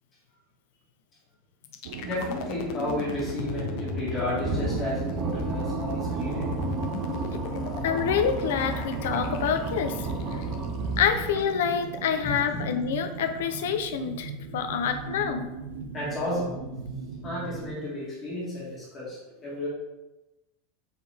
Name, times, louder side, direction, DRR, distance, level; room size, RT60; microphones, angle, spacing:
sound 1, 1.6-11.6, left 6 dB, 45° left, 0.6 m, -38 dB
sound 2, 1.8-17.7, right 5 dB, 65° right, 0.7 m, -39 dB
voice 1, 2.0-6.5 12.2-12.6 15.9-16.5 17.2-19.7, left 1 dB, 15° left, -7 dB, 1.9 m, -32 dB
sound 3, 4.4-11.7, right 3 dB, 25° right, 0.7 m, -32 dB
voice 2, 7.8-9.9 10.3-10.4 11.0-15.5, left 7 dB, 80° left, 6 dB, 0.7 m, -27 dB
7.1 x 4.0 x 3.5 m, 1.0 s
supercardioid pair, 180°, 0 cm